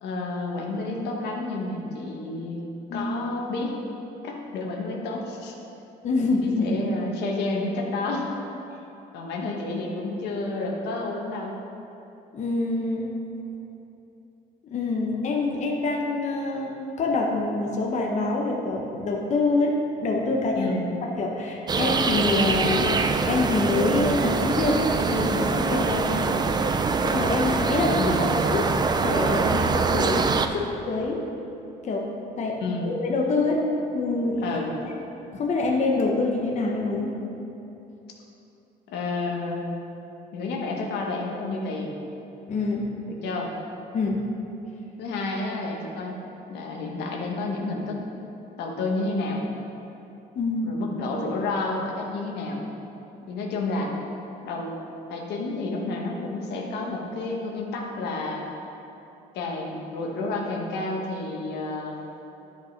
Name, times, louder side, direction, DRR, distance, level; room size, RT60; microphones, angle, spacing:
voice 1, 0.0-2.6 2.9-3.8 4.2-5.5 6.4-8.3 9.1-11.6 20.5-20.9 27.9-28.3 32.6-32.9 34.4-34.7 38.9-39.7 40.3-41.9 43.1-43.5 45.0-46.2 46.5-48.0 48.6-49.4 50.6-52.6 53.3-53.9 54.4-54.7 55.1-58.5 59.3-62.0, left 2 dB, 80° left, -1 dB, 1.4 m, -30 dB
voice 2, 6.0-6.8 12.3-13.1 14.7-19.8 20.0-20.8 21.2-23.0 23.3-26.3 27.0-28.7 29.0-31.2 31.8-32.1 32.4-33.6 33.9-34.6 35.0-35.1 35.3-37.2 42.5-42.9 43.9-44.2 50.3-50.8, left 3 dB, 45° left, 0 dB, 1.0 m, -26 dB
sound 1, 21.7-30.5, right 4 dB, 25° right, 0.5 m, -24 dB
10.5 x 5.2 x 5.3 m, 2.9 s
cardioid pair, 110°, 17 cm